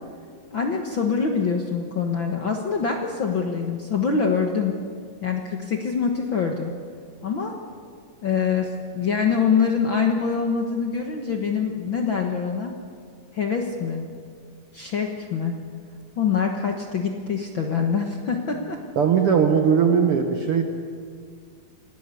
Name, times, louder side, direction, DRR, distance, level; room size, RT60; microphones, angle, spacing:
voice 1, 0.5-4.7 5.2-6.7 7.2-7.5 8.2-12.7 13.3-14.1 14.7-15.6 16.2-18.8, left 6 dB, 75° left, 3 dB, 1.1 m, -24 dB
voice 2, 19.0-20.6, right 7 dB, 90° right, 5 dB, 1.2 m, -19 dB
26.5 x 18.0 x 8.3 m, 2.1 s
omnidirectional pair, 4.4 m